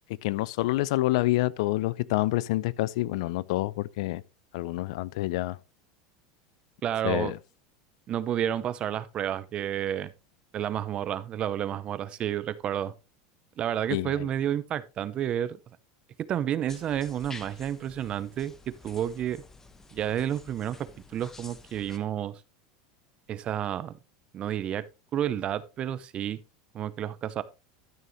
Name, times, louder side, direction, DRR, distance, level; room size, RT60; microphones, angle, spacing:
voice 1, 0.2-4.2 4.5-5.6 7.0-7.4 13.9-14.3, left 17 dB, 75° left, 0.5 m, -27 dB
voice 2, 6.8-7.3 8.1-10.1 10.5-12.9 13.6-15.6 16.3-19.4 19.9-22.3 23.3-23.9 24.3-24.8 25.1-26.4 26.7-27.4, right 10 dB, 35° right, 0.7 m, -30 dB
sound 1, 16.7-22.0, left 3 dB, 15° left, 1.0 m, -49 dB
12.5 x 6.8 x 3.1 m
supercardioid pair, 140°, 3 cm